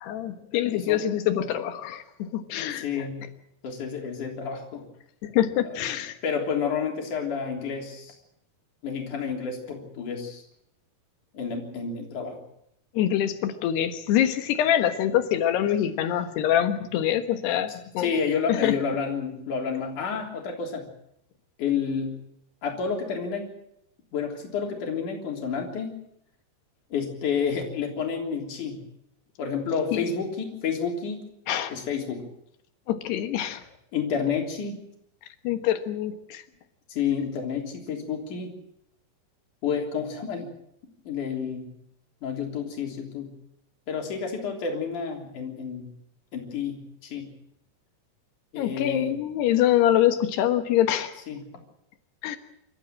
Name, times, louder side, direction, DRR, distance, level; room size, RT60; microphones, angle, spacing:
voice 1, 0.0-3.1 5.2-6.2 13.0-18.1 18.5-18.8 29.9-30.1 31.5-31.7 32.9-33.6 35.5-36.4 48.6-51.2 52.2-52.4, left 11 dB, 85° left, 9 dB, 3.5 m, -25 dB
voice 2, 0.7-1.0 2.8-3.2 3.6-4.9 6.2-8.1 8.8-10.4 11.3-12.4 18.0-20.9 21.6-22.2 22.6-23.5 24.1-26.0 26.9-28.8 29.4-31.2 31.7-32.2 33.9-34.8 36.9-38.5 39.6-40.5 41.1-41.7 42.2-43.3 43.9-45.9 46.3-47.3 48.5-49.2 51.3-51.5, left 6 dB, 50° left, 1 dB, 4.8 m, -30 dB
28.0 x 14.0 x 7.6 m, 0.76 s
omnidirectional pair, 4.6 m